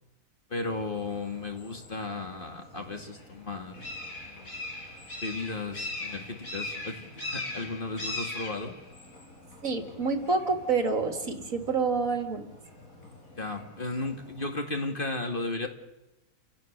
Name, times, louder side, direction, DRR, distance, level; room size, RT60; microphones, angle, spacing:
voice 1, 0.5-3.8 4.3-4.6 5.2-8.7 13.4-15.7, left 2 dB, 35° left, 4 dB, 2.3 m, -35 dB
sound 1, 0.7-14.5, left 2 dB, 60° left, 5.8 m, -42 dB
voice 2, 9.6-12.5, right 4 dB, 60° right, 6 dB, 2.5 m, -28 dB
29.5 x 17.5 x 6.6 m, 0.98 s
omnidirectional pair, 1.6 m